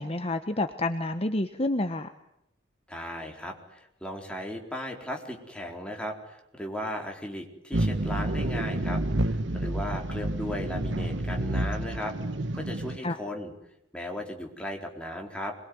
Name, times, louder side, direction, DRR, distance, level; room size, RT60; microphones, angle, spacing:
voice 1, 0.0-2.1 13.0-13.2, left 2 dB, 30° left, 8 dB, 1.1 m, -29 dB
voice 2, 2.9-12.1 12.5-13.5 13.9-15.5, left 1 dB, 5° left, 1 dB, 4.3 m, -36 dB
sound 1, 7.7-13.0, right 1 dB, 65° right, 1.2 m, -29 dB
26.5 x 22.0 x 9.6 m, 0.80 s
head